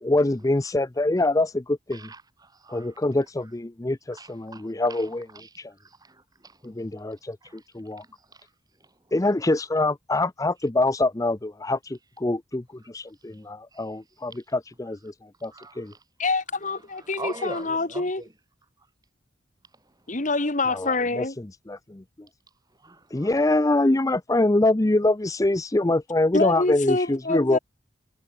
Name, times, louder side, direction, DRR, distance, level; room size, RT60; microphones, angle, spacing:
voice 1, 0.0-2.0 2.7-5.3 5.6-5.7 6.6-8.0 9.1-15.1 15.4-15.9 20.7-21.3 21.7-22.0 23.1-27.6, left 2 dB, 20° left, 0.6 m, -24 dB
voice 2, 1.9-3.2 4.1-7.7 8.0-8.5 8.8-9.1 13.3-14.0 14.3-14.4 15.5-16.0 16.7-18.3 19.7-20.3 22.8-23.5, right 2 dB, 20° right, 6.1 m, -44 dB
voice 3, 16.2-18.2 20.1-21.4 25.9-26.0 26.3-27.6, left 3 dB, 40° left, 2.0 m, -26 dB
head